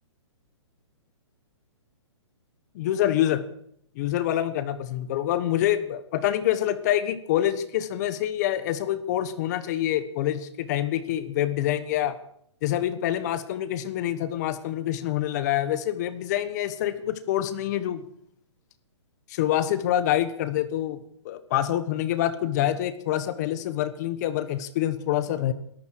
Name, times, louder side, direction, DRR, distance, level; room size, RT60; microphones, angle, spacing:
voice 1, 2.7-3.4 3.9-12.2 12.6-18.1 19.3-21.0 21.2-25.5, left 12 dB, 35° left, 13 dB, 1.3 m, -26 dB
22.0 x 13.5 x 4.8 m, 0.68 s
hypercardioid pair, 155°, 16 cm